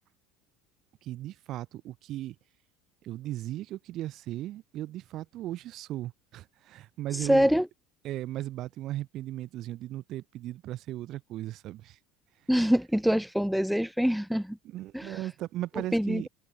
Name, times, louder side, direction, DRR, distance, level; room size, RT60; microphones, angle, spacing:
voice 1, 1.0-2.4 3.0-7.5 8.0-12.0 12.4-12.5 14.6-16.3, right 14 dB, 45° right, 1.2 m, -37 dB
voice 2, 7.3-7.7 12.5-14.6 14.9-15.2 15.9-16.3, equal, ahead, 0.3 m, -25 dB
supercardioid pair, 140°, 0 cm